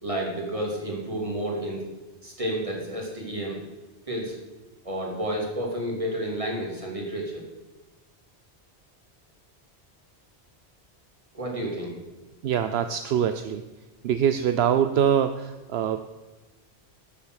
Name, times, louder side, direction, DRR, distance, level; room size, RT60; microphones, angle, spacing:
voice 1, 0.0-1.8 2.2-3.6 4.1-4.3 4.8-7.4 11.3-11.9, right 1 dB, 30° right, -2 dB, 3.1 m, -30 dB
voice 2, 12.4-13.6 14.0-16.1, right 8 dB, 75° right, 10 dB, 0.9 m, -24 dB
13.0 x 6.9 x 6.4 m, 1.2 s
omnidirectional pair, 1.1 m